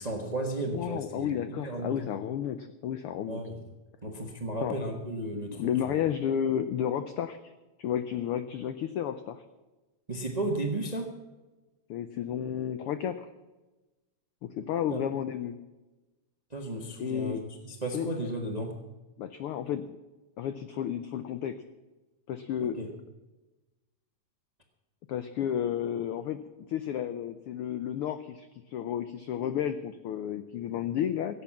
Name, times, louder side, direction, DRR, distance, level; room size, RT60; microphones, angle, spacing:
voice 1, 0.0-2.1 3.3-3.6 4.0-5.9 10.1-11.1 14.9-15.0 16.5-18.7 22.6-22.9, right 2 dB, 30° right, 3 dB, 0.7 m, -34 dB
voice 2, 0.7-3.4 4.6-4.8 5.6-7.4 7.8-9.4 11.9-13.3 14.4-15.5 17.0-17.4 17.9-18.1 19.2-19.8 20.4-21.5 22.3-22.8 25.1-26.4 26.7-31.4, left 9 dB, 85° left, 10 dB, 1.2 m, -32 dB
17.0 x 8.3 x 7.2 m, 1.1 s
omnidirectional pair, 3.3 m